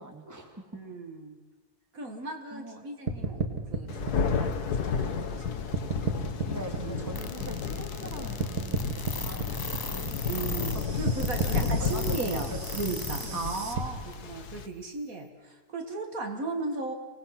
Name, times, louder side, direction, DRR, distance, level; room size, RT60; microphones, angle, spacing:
voice 1, 0.0-0.8 2.5-2.8 6.5-8.8 9.1-10.5 11.2-12.8 13.2-13.4, right 1 dB, 10° right, 3 dB, 2.2 m, -42 dB
voice 2, 0.7-1.4 1.9-4.5 4.8-5.4 6.4-7.2 10.2-16.9, right 3 dB, 60° right, 4 dB, 2.3 m, -36 dB
sound 1, 3.1-5.4 5.7-8.1 8.4-13.8, right 4 dB, 80° right, 2.3 m, -33 dB
Thunder, 3.9-14.7, left 5 dB, 80° left, 1.7 m, -32 dB
sound 2, 7.1-13.3 13.5-13.6 14.1-14.2, left 3 dB, 25° left, 0.4 m, -38 dB
25.5 x 19.0 x 6.0 m, 1.3 s
omnidirectional pair, 1.6 m